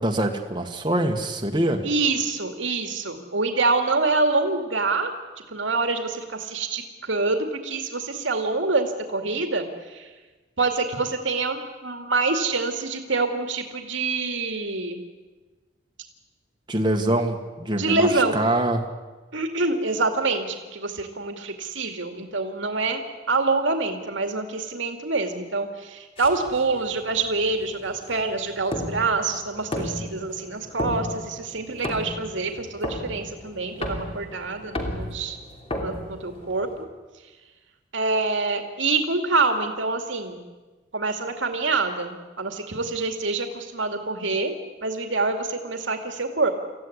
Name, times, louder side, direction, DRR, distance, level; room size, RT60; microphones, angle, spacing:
voice 1, 0.0-1.8 16.7-18.8, right 1 dB, 25° right, 3 dB, 1.7 m, -24 dB
voice 2, 1.8-5.1 5.5-10.1 10.6-15.0 17.7-18.4 19.3-35.4 35.8-36.7 37.9-40.4 40.9-44.5 44.8-46.5, right 3 dB, 80° right, 5 dB, 2.3 m, -26 dB
sound 1, 26.2-36.8, left 1 dB, 30° left, 3.0 m, -34 dB
25.5 x 15.5 x 9.8 m, 1.3 s
head